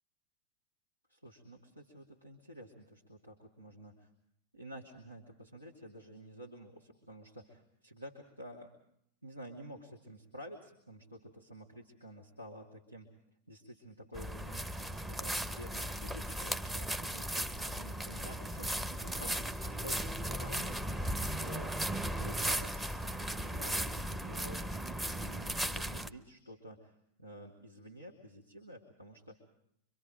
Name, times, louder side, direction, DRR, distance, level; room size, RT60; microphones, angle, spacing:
voice 1, 1.1-4.1 4.5-8.7 9.2-13.1 13.5-20.8 21.2-23.0 23.4-24.7 25.0-29.5, equal, 85° right, -2 dB, 2.4 m, -51 dB
sound 1, 14.1-26.1, right 1 dB, 10° right, 0.8 m, -36 dB
25.5 x 25.0 x 5.0 m, 0.75 s
figure-of-eight pair, 90°, 0 cm